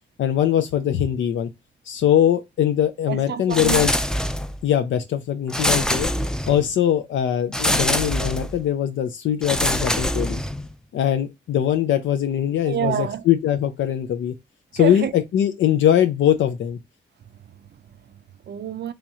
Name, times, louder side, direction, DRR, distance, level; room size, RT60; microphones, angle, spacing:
voice 1, 0.2-1.5 1.9-3.9 4.6-6.1 6.5-10.4 10.9-14.3 14.7-16.8, left 10 dB, 85° left, 0.4 m, -21 dB
voice 2, 3.1-3.9 12.6-13.2 14.8-15.1 17.3-18.9, right 9 dB, 60° right, 0.4 m, -29 dB
sound 1, 3.5-4.6 5.5-6.7 7.5-8.6 9.4-10.7, equal, 5° left, 0.4 m, -24 dB
3.1 x 2.9 x 3.5 m
cardioid pair, 50°, 20 cm